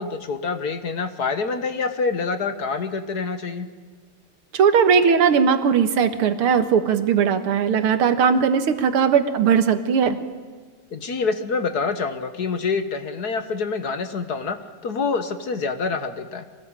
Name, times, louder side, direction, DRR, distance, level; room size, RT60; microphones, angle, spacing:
voice 1, 0.0-3.7 10.9-14.6 14.8-16.4, left 4 dB, 50° left, 10 dB, 1.7 m, -26 dB
voice 2, 4.5-10.2, right 6 dB, 80° right, 10 dB, 2.3 m, -18 dB
24.0 x 18.5 x 8.9 m, 1.5 s
omnidirectional pair, 2.4 m